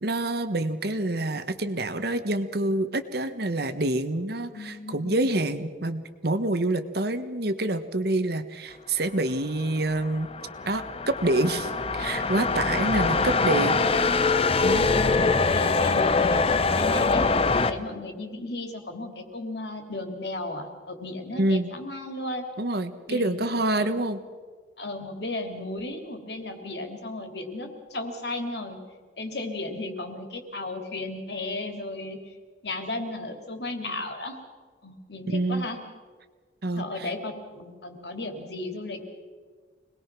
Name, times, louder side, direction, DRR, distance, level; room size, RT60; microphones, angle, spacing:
voice 1, 0.0-10.3 10.6-13.8 14.6-14.9 21.3-21.7 22.6-24.2 35.3-35.7 36.6-37.1, right 2 dB, 60° right, 10 dB, 1.4 m, -27 dB
voice 2, 4.5-5.4 14.9-17.3 17.6-22.4 23.1-23.4 23.8-23.9 24.8-28.8 29.2-32.2 32.6-34.4 34.8-35.8 36.7-39.0, left 2 dB, 65° left, 5 dB, 3.1 m, -35 dB
sound 1, 9.8-17.7, left 4 dB, 30° left, 0.8 m, -23 dB
26.0 x 20.0 x 6.1 m, 1.5 s
head